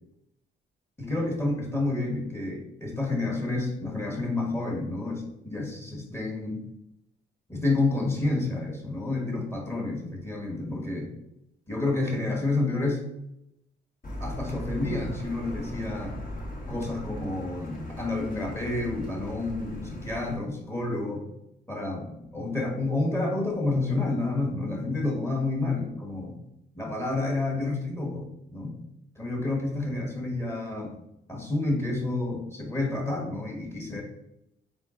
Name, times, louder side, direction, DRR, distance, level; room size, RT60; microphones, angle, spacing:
voice 1, 1.0-6.6 7.5-11.1 11.7-13.0 14.1-16.2 16.7-21.3 21.7-26.4 26.7-28.8 29.2-31.0 31.3-34.0, left 2 dB, 10° left, -1 dB, 1.2 m, -29 dB
Car, 14.0-20.3, equal, 40° left, 1.2 m, -38 dB
3.7 x 3.4 x 3.7 m, 0.85 s
cardioid pair, 90°, 20 cm